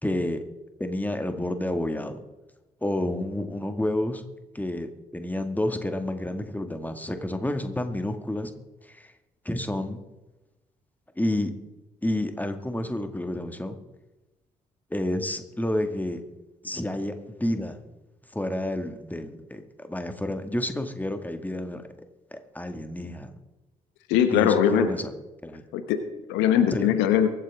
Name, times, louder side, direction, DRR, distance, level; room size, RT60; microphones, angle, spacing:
voice 1, 0.0-0.4 0.8-2.2 2.8-4.2 4.5-8.5 8.8-9.1 9.5-10.0 11.2-11.5 12.0-13.8 14.9-16.2 16.6-17.8 18.3-21.8 22.3-23.3 24.3-25.1 25.4-25.6 26.7-26.9, left 1 dB, 10° left, 7 dB, 2.0 m, -29 dB
voice 2, 24.1-24.9 25.7-27.3, left 9 dB, 70° left, 10 dB, 1.1 m, -21 dB
23.5 x 9.0 x 3.6 m, 1.1 s
figure-of-eight pair, 40°, 19 cm